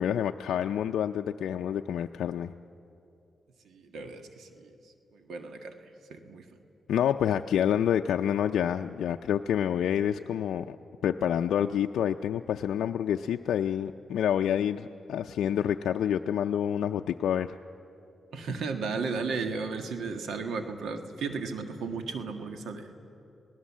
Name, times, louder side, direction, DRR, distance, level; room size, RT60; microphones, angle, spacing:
voice 1, 0.0-2.5 6.9-10.8 11.0-17.6, left 9 dB, 90° left, 5 dB, 0.4 m, -28 dB
voice 2, 3.6-4.7 5.1-5.7 6.1-6.4 18.3-22.9, right 4 dB, 85° right, 6 dB, 1.7 m, -34 dB
26.5 x 18.5 x 7.4 m, 2.7 s
cardioid pair, 80°, 0 cm